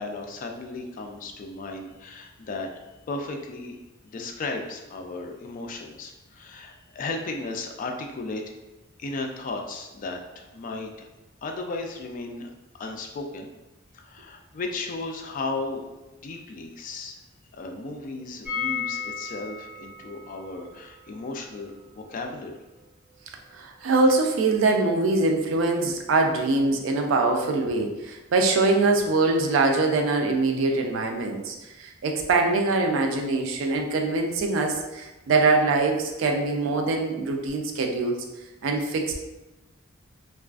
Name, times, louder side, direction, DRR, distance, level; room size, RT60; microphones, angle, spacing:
voice 1, 0.0-2.7 3.1-3.8 4.0-8.4 9.0-11.1 11.4-12.5 12.8-13.5 13.9-17.2 17.5-22.5, left 3 dB, 40° left, 3 dB, 0.3 m, -35 dB
sound 1, 18.4-24.2 24.5-24.6 24.8-24.9, left 6 dB, 10° right, 1.2 m, -36 dB
voice 2, 23.5-38.2 38.6-39.2, right 3 dB, 70° right, 2 dB, 0.4 m, -23 dB
2.3 x 2.3 x 2.3 m, 1.1 s
head